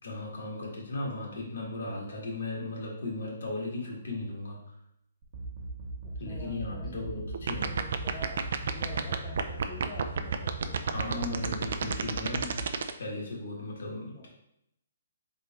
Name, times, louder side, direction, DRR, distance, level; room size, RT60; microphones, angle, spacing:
voice 1, 0.0-4.6 6.2-7.7 10.9-12.6 13.0-14.3, left 2 dB, 75° left, -3 dB, 1.7 m, -36 dB
sound 1, 5.2-12.6, right 2 dB, 45° right, 1.0 m, -40 dB
voice 2, 6.0-11.1 14.1-14.3, left 1 dB, 15° left, -4 dB, 0.6 m, -46 dB
sound 2, 7.3-12.9, right 7 dB, 60° right, 0.4 m, -29 dB
3.7 x 3.3 x 4.0 m, 0.77 s
hypercardioid pair, 165°, 0 cm